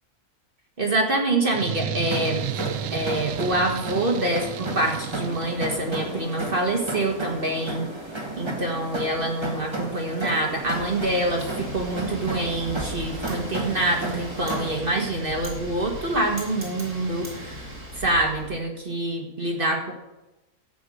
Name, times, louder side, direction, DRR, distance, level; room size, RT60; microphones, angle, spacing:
voice 1, 0.8-2.4 2.9-7.9 8.4-17.6 17.9-19.9, right 1 dB, 35° right, 1 dB, 1.8 m, -26 dB
sound 1, 1.5-6.0, right 11 dB, 90° right, 1.2 m, -33 dB
sound 2, 2.1-14.8, right 2 dB, 20° right, 1.7 m, -33 dB
Wind, 10.4-18.5, right 1 dB, 55° right, 3.8 m, -37 dB
12.5 x 8.3 x 6.3 m, 1.0 s
omnidirectional pair, 1.6 m